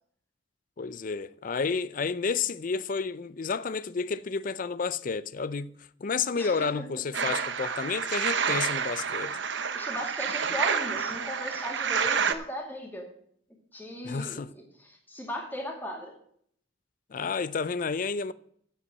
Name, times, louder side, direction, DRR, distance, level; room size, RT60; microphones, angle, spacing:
voice 1, 0.8-5.7 6.0-9.4 14.0-14.5 17.1-18.3, left 5 dB, 45° left, 0.4 m, -31 dB
voice 2, 6.4-6.9 7.2-7.3 9.7-13.1 13.7-16.1, left 1 dB, 10° left, 2.4 m, -37 dB
sound 1, 7.1-12.3, right 6 dB, 60° right, 0.7 m, -29 dB
8.3 x 8.2 x 7.8 m
head